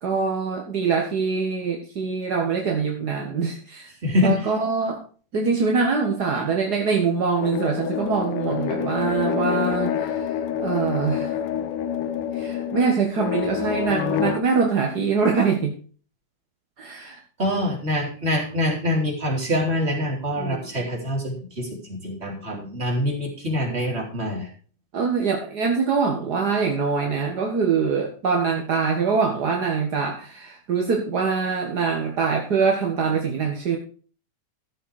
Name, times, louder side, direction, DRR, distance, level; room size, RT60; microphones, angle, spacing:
voice 1, 0.0-3.9 4.2-5.0 5.3-11.4 12.3-15.7 16.8-17.2 20.4-20.9 24.9-33.8, right 5 dB, 40° right, 1 dB, 1.5 m, -24 dB
voice 2, 4.0-4.4 17.4-24.5, left 1 dB, 20° right, -1 dB, 3.7 m, -25 dB
sound 1, 7.4-14.4, left 9 dB, 85° left, 2.5 m, -27 dB
14.0 x 7.8 x 4.9 m, 0.40 s
omnidirectional pair, 3.6 m